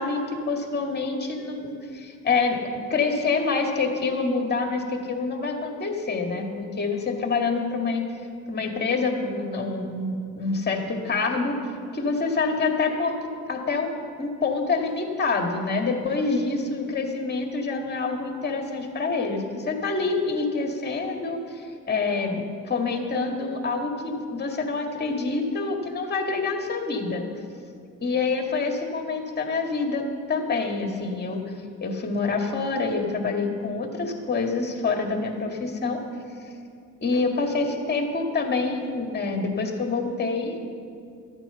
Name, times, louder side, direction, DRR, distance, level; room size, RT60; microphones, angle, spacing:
voice 1, 0.0-2.6 2.9-8.0 8.5-11.6 11.9-13.2 13.5-27.2 28.0-31.4 31.8-36.0 37.0-40.6, left 4 dB, 35° left, 3 dB, 2.0 m, -26 dB
13.5 x 8.9 x 6.9 m, 2.4 s
cardioid pair, 90°, 30 cm